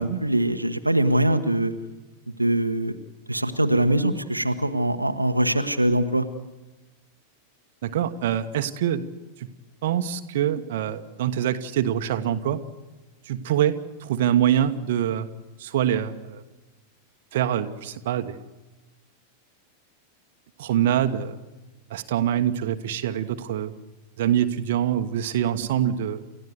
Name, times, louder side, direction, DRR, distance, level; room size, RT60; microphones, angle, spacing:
voice 1, 0.0-1.7 2.4-2.9 3.3-6.3, right 1 dB, 85° right, 6 dB, 1.1 m, -22 dB
voice 2, 7.8-9.0 9.4-9.5 9.8-12.6 13.3-13.7 14.0-15.3 15.6-16.4 17.3-18.4 20.6-21.4 21.9-23.8 24.2-26.2, right 10 dB, 55° right, 8 dB, 1.2 m, -24 dB
29.5 x 14.5 x 8.1 m, 1.1 s
figure-of-eight pair, 90°, 0 cm